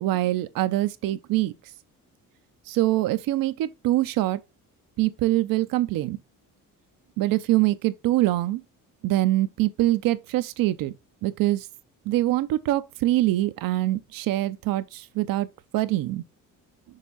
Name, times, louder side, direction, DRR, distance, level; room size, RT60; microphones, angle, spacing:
voice 1, 0.0-1.5 2.7-4.4 5.0-6.2 7.2-8.6 9.0-10.9 11.2-11.7 12.1-15.5 15.7-16.2, right 16 dB, 90° right, 0.7 m, -24 dB
6.6 x 3.6 x 3.9 m
cardioid pair, 125°, 33 cm